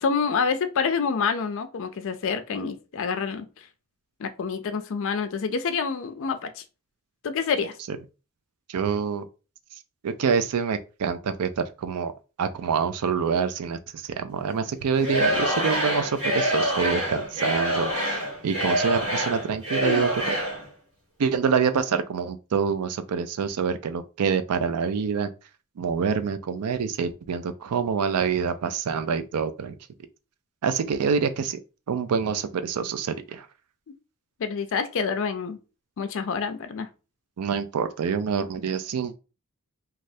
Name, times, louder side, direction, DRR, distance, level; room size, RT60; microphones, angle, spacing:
voice 1, 0.0-3.5 4.2-6.6 7.2-7.8 19.8-20.1 34.4-35.6 36.0-36.9, left 5 dB, 60° left, 0.4 m, -27 dB
voice 2, 8.7-9.3 10.0-12.1 12.4-20.4 21.2-25.3 25.8-29.7 30.6-31.6 31.9-33.5 37.4-39.2, right 6 dB, 90° right, 0.4 m, -26 dB
Singing / Crowd, 15.0-20.6, equal, 60° right, 1.3 m, -26 dB
3.2 x 2.3 x 2.6 m
head